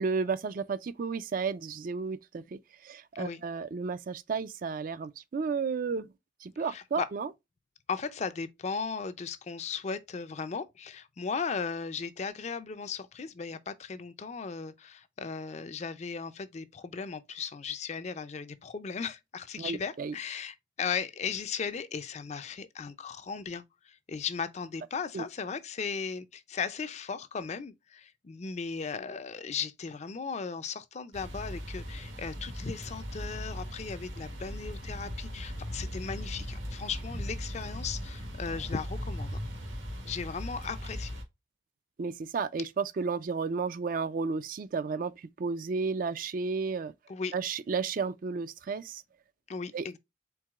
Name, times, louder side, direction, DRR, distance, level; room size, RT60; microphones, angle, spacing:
voice 1, 0.0-6.1 6.4-7.3 19.6-20.2 25.1-25.2 42.0-46.9 47.3-49.0 49.7-49.9, right 5 dB, 45° right, 0.3 m, -33 dB
voice 2, 6.7-7.1 7.9-39.4 40.0-41.2 47.1-47.3 49.5-50.0, left 5 dB, 35° left, 0.4 m, -37 dB
sound 1, 31.1-41.2, equal, 80° right, 1.4 m, -38 dB
4.6 x 3.7 x 2.3 m
head